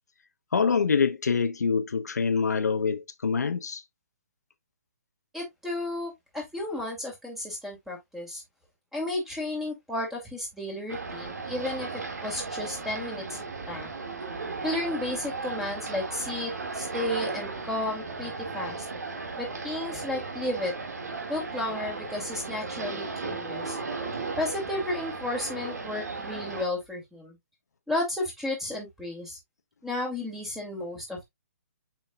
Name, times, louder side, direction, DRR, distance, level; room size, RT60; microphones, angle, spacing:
voice 1, 0.5-3.8, left 5 dB, 85° left, 0.9 m, -25 dB
voice 2, 5.3-8.4 8.9-11.9 12.2-13.4 13.7-13.9 14.6-18.9 19.4-20.7 21.3-23.8 24.4-27.4 27.9-29.4 29.8-31.2, left 1 dB, 5° right, 2.5 m, -33 dB
sound 1, 10.9-26.6, right 4 dB, 85° right, 2.0 m, -36 dB
7.0 x 5.7 x 2.3 m
hypercardioid pair, 150°, 9 cm